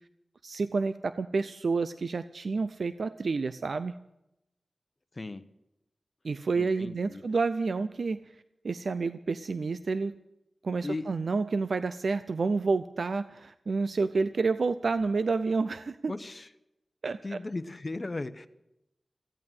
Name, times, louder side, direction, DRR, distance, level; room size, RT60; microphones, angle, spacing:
voice 1, 0.4-3.9 6.2-8.2 8.6-10.1 10.6-16.1 17.0-17.4, right 4 dB, 75° right, 12 dB, 0.5 m, -29 dB
voice 2, 6.6-7.2 10.8-11.1 16.1-16.5 17.2-18.5, left 2 dB, 40° left, 11 dB, 0.9 m, -36 dB
15.5 x 8.7 x 9.1 m, 0.89 s
cardioid pair, 50°, 0 cm